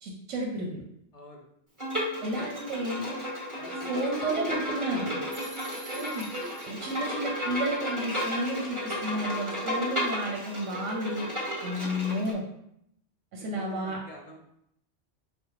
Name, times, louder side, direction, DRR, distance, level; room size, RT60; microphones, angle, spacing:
voice 1, 0.0-0.8 2.2-3.1 3.9-5.1 5.9-6.3 6.7-11.3 11.6-12.4 13.3-14.0, right 1 dB, 80° right, 0 dB, 1.0 m, -32 dB
voice 2, 1.1-1.5 2.4-2.5 3.5-5.4 13.4-14.4, left 2 dB, 45° left, 0 dB, 0.5 m, -45 dB
Bowed string instrument, 1.8-12.3, equal, 15° right, 1.1 m, -33 dB
sound 1, 5.3-7.0, right 4 dB, 65° right, 0.4 m, -47 dB
5.1 x 2.1 x 3.0 m, 0.76 s
omnidirectional pair, 1.2 m